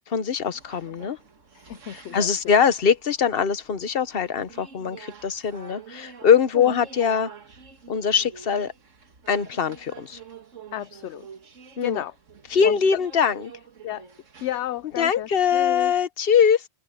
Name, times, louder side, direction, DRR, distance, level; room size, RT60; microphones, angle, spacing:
voice 1, 0.1-1.2 1.9-7.3 7.9-8.7 9.3-10.2 11.8-12.0 12.5-13.5 15.0-16.7, left 7 dB, 50° left, 1.2 m, -22 dB
sound 1, 0.5-16.0, right 6 dB, 80° right, 2.2 m, -48 dB
voice 2, 1.5-2.3 6.5-6.7 10.7-11.3 11.8-12.1 12.6-13.0 13.8-14.0 14.4-15.9, left 13 dB, 70° left, 0.9 m, -32 dB
open air
omnidirectional pair, 1.3 m